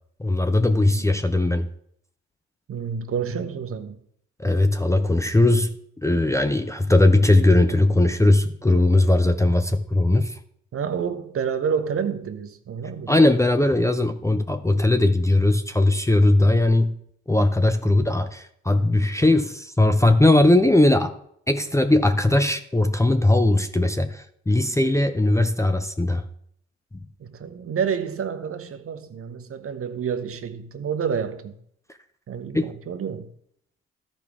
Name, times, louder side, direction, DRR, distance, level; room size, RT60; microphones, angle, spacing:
voice 1, 0.2-1.7 4.4-5.7 6.0-10.4 13.1-16.9 17.3-21.2 21.5-26.2 32.5-32.7, left 2 dB, 10° left, 0.7 m, -19 dB
voice 2, 2.7-4.0 10.7-13.1 27.2-31.6 32.3-33.3, right 7 dB, 45° right, 0.9 m, -29 dB
13.5 x 5.1 x 3.5 m
hypercardioid pair, 50°, 32 cm